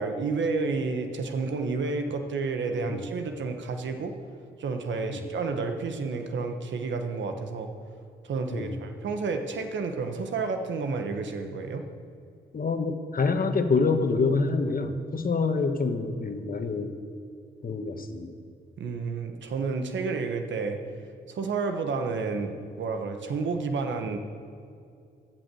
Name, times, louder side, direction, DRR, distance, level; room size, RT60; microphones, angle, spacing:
voice 1, 0.0-4.1 4.6-7.7 8.2-11.8 18.8-20.8 21.3-24.2, right 4 dB, 80° right, 6 dB, 1.2 m, -30 dB
voice 2, 12.5-16.9 17.6-18.3, left 4 dB, 50° left, 7 dB, 1.3 m, -26 dB
15.0 x 6.1 x 7.8 m, 2.4 s
cardioid pair, 65°, 19 cm